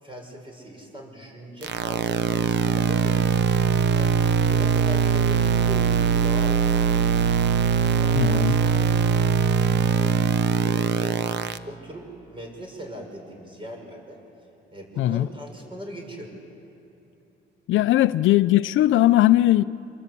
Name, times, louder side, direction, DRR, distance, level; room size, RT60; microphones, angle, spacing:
voice 1, 0.0-3.3 3.9-4.2 4.4-6.7 7.9-9.1 10.6-11.2 11.6-14.2 14.7-16.3, equal, 25° right, 6.6 m, -39 dB
sound 1, 1.6-11.6, right 7 dB, 60° right, 0.9 m, -21 dB
voice 2, 8.1-8.6 15.0-15.3 17.7-19.6, left 14 dB, 80° left, 0.6 m, -19 dB
26.5 x 22.5 x 8.4 m
cardioid pair, 90°, 20 cm